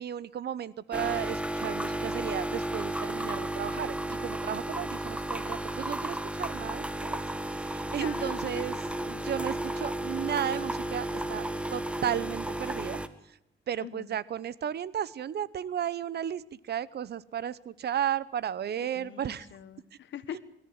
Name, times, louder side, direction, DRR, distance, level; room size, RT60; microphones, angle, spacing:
voice 1, 0.0-13.0 13.7-19.5, right 9 dB, 55° right, 20 dB, 0.9 m, -34 dB
sound 1, 0.9-13.1, right 1 dB, 5° right, 1.5 m, -33 dB
voice 2, 8.0-8.9 13.8-14.1 18.8-20.4, left 10 dB, 70° left, 12 dB, 1.7 m, -44 dB
23.5 x 14.0 x 8.8 m, 0.77 s
cardioid pair, 90°, 20 cm